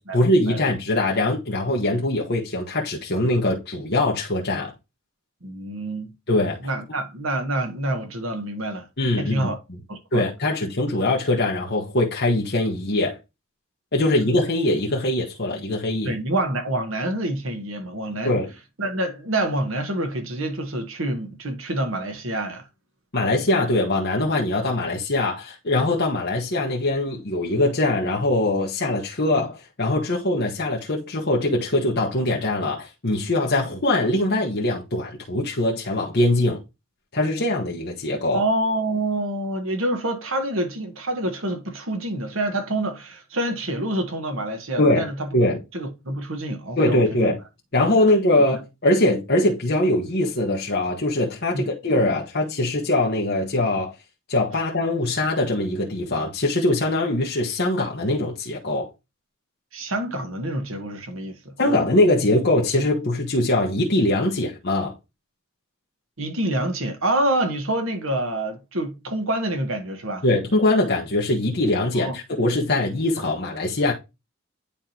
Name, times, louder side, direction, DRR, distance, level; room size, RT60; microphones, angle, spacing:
voice 1, 0.0-4.7 6.3-6.6 9.0-9.5 10.1-13.2 13.9-16.1 18.2-18.5 23.1-36.6 37.1-38.4 44.8-45.1 45.3-45.6 46.8-47.4 47.7-53.9 54.3-58.9 61.6-64.9 70.2-73.9, left 1 dB, 50° left, 1.3 m, -22 dB
voice 2, 5.4-6.1 6.6-8.9 9.2-9.6 9.9-10.2 16.0-18.4 18.8-22.7 38.3-45.3 45.7-47.3 51.5-51.7 59.7-61.4 61.6-61.8 66.2-70.2 71.9-72.2, right 1 dB, 65° right, 1.5 m, -27 dB
10.0 x 3.8 x 2.9 m
head